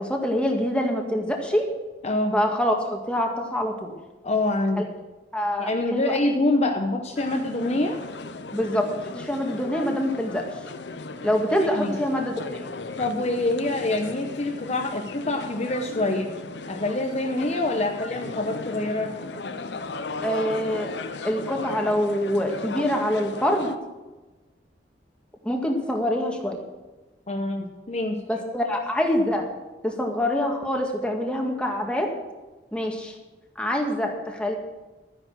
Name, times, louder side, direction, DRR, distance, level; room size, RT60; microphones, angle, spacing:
voice 1, 0.0-1.7 2.3-3.9 5.3-6.2 8.5-10.5 11.2-12.7 20.2-20.9 21.2-23.7 25.4-26.6 28.3-29.5 29.8-32.1 32.7-33.1 33.6-34.5, equal, 5° left, 1 dB, 1.9 m, -25 dB
voice 2, 2.0-2.3 4.2-4.9 5.6-8.0 11.6-12.0 13.0-16.3 16.7-19.1 27.3-28.2, left 2 dB, 40° left, 3 dB, 1.0 m, -25 dB
sound 1, 7.2-23.8, left 3 dB, 80° left, 0.8 m, -36 dB
12.5 x 9.9 x 6.3 m, 1.2 s
head